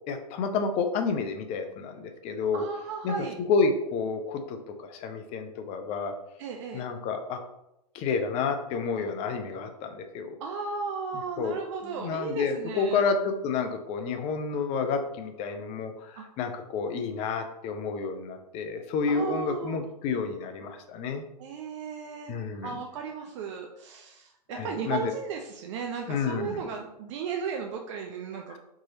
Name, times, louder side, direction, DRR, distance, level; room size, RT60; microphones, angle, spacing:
voice 1, 0.1-2.6 3.0-6.1 6.7-7.4 7.9-10.4 11.4-21.2 22.3-22.8 24.5-25.0 26.1-26.6 28.5-28.6, left 5 dB, 30° left, 7 dB, 0.5 m, -30 dB
voice 2, 2.5-3.4 6.4-6.8 10.4-13.0 16.2-16.3 19.1-19.8 21.4-22.3 22.6-28.6, right 6 dB, 45° right, 3 dB, 0.5 m, -35 dB
4.6 x 3.0 x 2.8 m, 0.85 s
hypercardioid pair, 115°, 21 cm